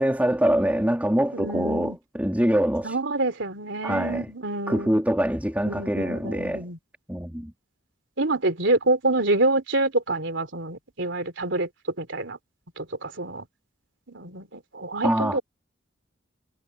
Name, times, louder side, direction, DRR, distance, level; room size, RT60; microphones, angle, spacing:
voice 1, 0.0-2.9 3.8-4.3 4.7-6.6 7.1-7.5 15.0-15.4, right 1 dB, 10° right, 3.0 m, -24 dB
voice 2, 1.3-2.0 2.8-5.0 5.6-6.8 8.2-11.7 12.0-12.4 12.8-13.4 14.1-15.4, right 2 dB, 75° right, 3.4 m, -27 dB
head